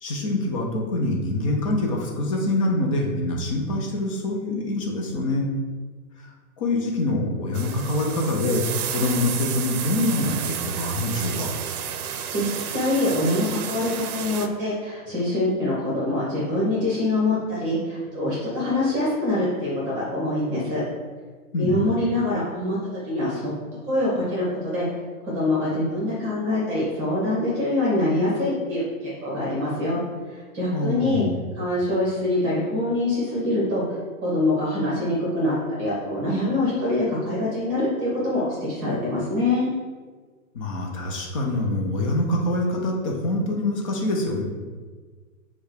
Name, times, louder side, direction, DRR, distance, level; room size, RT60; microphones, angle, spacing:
voice 1, 0.0-5.5 6.6-8.6 8.9-11.5 21.5-21.8 30.7-31.4 40.5-44.4, left 2 dB, 25° left, 0 dB, 0.4 m, -25 dB
sound 1, 7.5-14.5, right 8 dB, 90° right, 0.6 m, -31 dB
voice 2, 12.3-20.8 21.6-22.8 23.0-23.5 23.8-24.9 25.2-30.0 30.3-31.2 31.5-39.7, left 1 dB, 25° right, -6 dB, 1.2 m, -24 dB
4.5 x 2.3 x 4.8 m, 1.4 s
hypercardioid pair, 150°, 43 cm